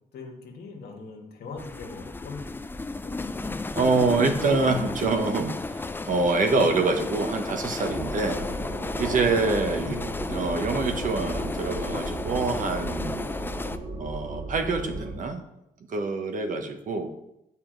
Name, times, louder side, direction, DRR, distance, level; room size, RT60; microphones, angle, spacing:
voice 1, 0.1-2.5 3.0-3.2 6.6-6.8 9.0-9.9, left 4 dB, 80° left, 1 dB, 1.6 m, -40 dB
sound 1, 1.6-13.8, left 3 dB, 15° left, 0.4 m, -33 dB
voice 2, 3.7-8.4 9.0-10.0 10.3-13.3 14.0-15.4 15.9-17.1, right 3 dB, 55° right, 5 dB, 1.0 m, -26 dB
sound 2, 7.8-15.1, right 2 dB, 70° right, 2.6 m, -35 dB
8.9 x 5.6 x 3.9 m, 0.84 s
cardioid pair, 115°, 16 cm